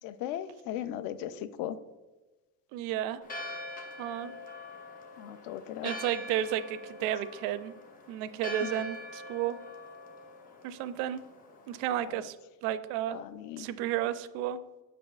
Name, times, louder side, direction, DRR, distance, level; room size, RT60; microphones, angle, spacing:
voice 1, 0.0-1.8 5.2-5.9 8.6-8.8 12.1-12.3 13.1-13.7, left 11 dB, 65° left, 13 dB, 0.5 m, -38 dB
voice 2, 2.7-3.2 4.0-4.3 5.8-7.7 8.1-9.6 10.6-11.2 11.7-12.4 12.6-13.2 13.6-14.6, right 11 dB, 70° right, 14 dB, 0.5 m, -32 dB
Church bell, 3.2-12.1, left 1 dB, 20° left, 0.6 m, -44 dB
7.6 x 5.3 x 2.3 m, 1.2 s
cardioid pair, 145°, 38 cm